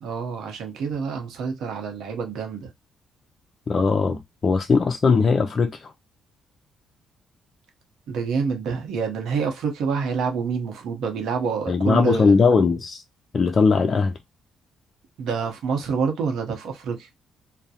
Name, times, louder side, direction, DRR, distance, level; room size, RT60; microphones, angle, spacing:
voice 1, 0.0-2.7 8.1-12.4 15.2-17.1, right 5 dB, 80° right, 0.8 m, -27 dB
voice 2, 3.7-5.9 11.7-13.0 13.3-14.2, left 4 dB, 40° left, 0.3 m, -19 dB
2.3 x 2.0 x 2.8 m
cardioid pair, 90°, 0 cm